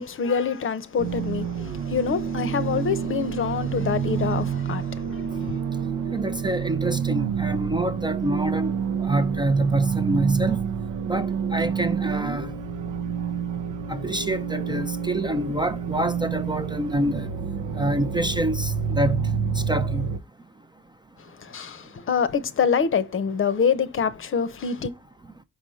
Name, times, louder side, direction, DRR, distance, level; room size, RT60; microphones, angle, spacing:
voice 1, 0.0-5.2 5.5-5.6 21.4-24.9, left 6 dB, 45° left, 0.7 m, -26 dB
sound 1, 1.0-20.2, right 7 dB, 85° right, 0.7 m, -28 dB
voice 2, 6.1-8.7 9.0-10.6 11.1-12.5 13.9-17.3 17.8-19.2 19.7-20.1, right 1 dB, 15° right, 0.4 m, -26 dB
5.1 x 5.0 x 3.9 m
cardioid pair, 90°, 30 cm